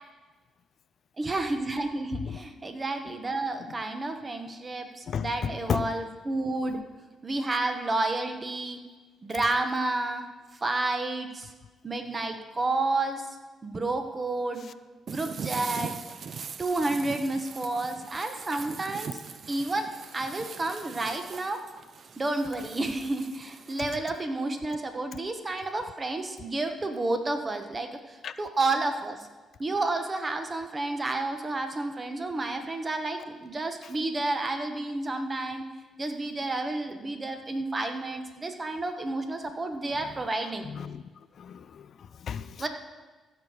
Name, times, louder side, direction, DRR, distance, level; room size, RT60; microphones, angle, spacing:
voice 1, 1.2-6.8 7.2-8.8 9.2-10.3 10.6-11.5 11.8-13.3 13.6-14.6 15.1-16.0 16.6-19.2 19.5-21.6 22.2-29.3 29.6-35.6 36.0-40.6 42.6-42.7, right 2 dB, 30° right, 1.3 m, -30 dB
voice 2, 5.1-5.9 28.2-28.4 40.6-41.0 41.4-42.6, left 7 dB, 60° left, 0.4 m, -33 dB
sound 1, 15.1-24.0, right 6 dB, 50° right, 0.6 m, -41 dB
15.0 x 6.3 x 5.1 m
cardioid pair, 90°, 0 cm